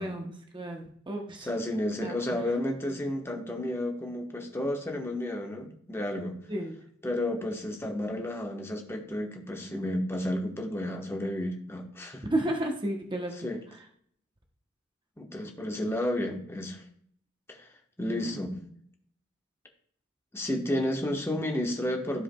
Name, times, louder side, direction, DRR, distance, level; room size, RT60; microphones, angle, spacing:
voice 1, 0.0-1.5 2.0-2.4 6.5-6.8 12.3-13.3 18.1-18.3, right 1 dB, 25° right, 2 dB, 0.9 m, -32 dB
voice 2, 1.5-6.4 7.0-12.2 13.4-13.6 15.2-16.8 17.5-17.7 18.0-18.6 20.3-22.2, left 1 dB, 10° left, 1 dB, 1.2 m, -32 dB
14.0 x 4.9 x 2.3 m, 0.65 s
head